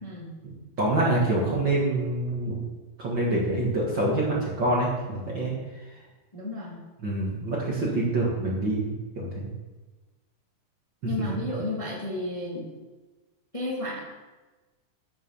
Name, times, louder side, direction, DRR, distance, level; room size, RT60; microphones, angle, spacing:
voice 1, 0.4-2.7 3.0-5.5 7.0-9.5 11.0-11.4, right 2 dB, 40° right, -4 dB, 2.1 m, -26 dB
voice 2, 6.3-6.8 11.0-12.7 13.5-14.0, left 2 dB, 15° left, -5 dB, 1.7 m, -32 dB
9.5 x 6.8 x 7.0 m, 1.2 s
omnidirectional pair, 3.7 m